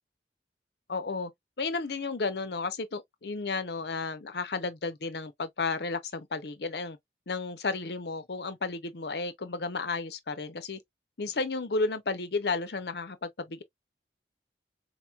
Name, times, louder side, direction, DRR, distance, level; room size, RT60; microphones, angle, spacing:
voice 1, 0.9-1.3 1.6-7.0 7.3-10.8 11.2-13.6, left 3 dB, 70° left, 0.7 m, -33 dB
4.1 x 3.0 x 2.3 m
head